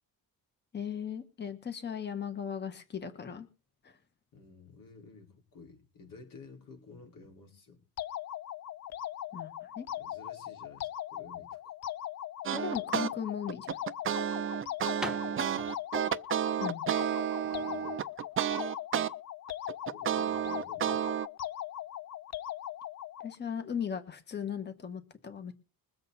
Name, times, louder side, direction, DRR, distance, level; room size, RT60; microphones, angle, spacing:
voice 1, 0.7-3.5 3.8-3.9 9.3-9.5 9.8-9.9 12.5-13.8 16.6-16.8 23.2-25.5, left 7 dB, 30° left, 9 dB, 1.4 m, -37 dB
voice 2, 4.3-7.8 10.0-11.7 15.0-15.8 17.4-18.0 19.9-21.1, left 4 dB, 65° left, 2 dB, 4.9 m, -53 dB
sound 1, 8.0-23.4, left 11 dB, 50° left, 0.5 m, -40 dB
sound 2, 12.5-13.1 13.5-19.1 19.5-21.3, right 9 dB, 35° right, 0.5 m, -31 dB
sound 3, 13.3-18.7, right 1 dB, ahead, 1.2 m, -45 dB
22.0 x 7.9 x 4.2 m, 0.33 s
wide cardioid pair, 165°, 35 cm